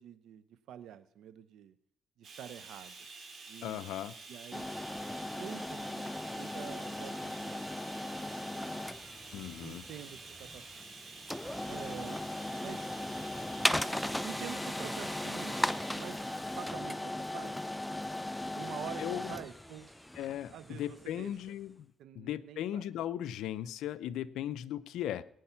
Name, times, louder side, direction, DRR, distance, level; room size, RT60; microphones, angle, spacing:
voice 1, 0.0-1.8 2.2-3.0 3.5-3.8 4.3-4.7 5.4-7.8 8.5-11.0 11.7-12.2 12.6-12.9 14.2-15.6 15.9-16.3 16.6-17.6 18.5-19.9 20.5-21.5 22.0-22.9, right 10 dB, 80° right, 15 dB, 0.9 m, -47 dB
Bathtub (filling or washing), 2.2-18.9 19.8-19.9 20.3-20.4, right 4 dB, 50° right, 4.0 m, -50 dB
voice 2, 3.6-4.1 9.3-9.9 19.0-19.4 20.2-25.2, left 11 dB, 85° left, 13 dB, 0.6 m, -37 dB
sound 1, 4.5-21.4, left 1 dB, 5° left, 0.6 m, -37 dB
19.5 x 9.5 x 5.8 m, 0.70 s
cardioid pair, 90°, 0 cm